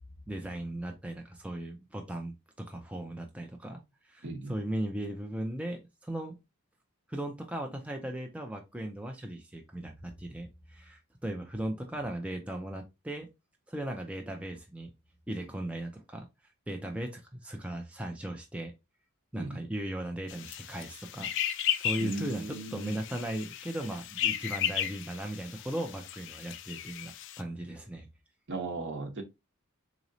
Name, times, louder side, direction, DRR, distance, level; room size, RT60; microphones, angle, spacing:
voice 1, 0.3-6.4 7.1-13.3 13.7-14.9 15.3-16.3 16.7-18.7 19.3-28.1, right 1 dB, 5° right, 0.5 m, -37 dB
voice 2, 4.2-4.5 19.4-19.6 22.0-22.9 28.5-29.2, right 3 dB, 55° right, 0.9 m, -37 dB
sound 1, 20.3-27.4, left 10 dB, 55° left, 0.4 m, -35 dB
3.9 x 3.0 x 2.6 m
head